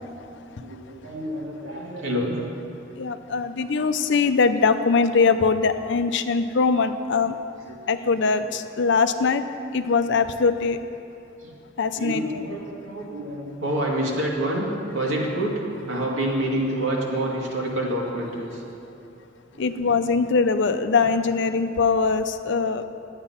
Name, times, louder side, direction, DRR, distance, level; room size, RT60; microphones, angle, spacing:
voice 1, 0.5-2.4 3.6-3.9 7.6-8.4 10.3-10.4 11.4-11.5 11.9-18.6 19.5-20.1 20.9-21.3, right 1 dB, 80° right, -3 dB, 2.2 m, -28 dB
voice 2, 3.0-7.3 7.9-9.4 9.7-10.8 11.8-12.2 19.6-22.8, left 4 dB, 65° left, 10 dB, 0.5 m, -22 dB
11.5 x 8.7 x 5.7 m, 2.8 s
head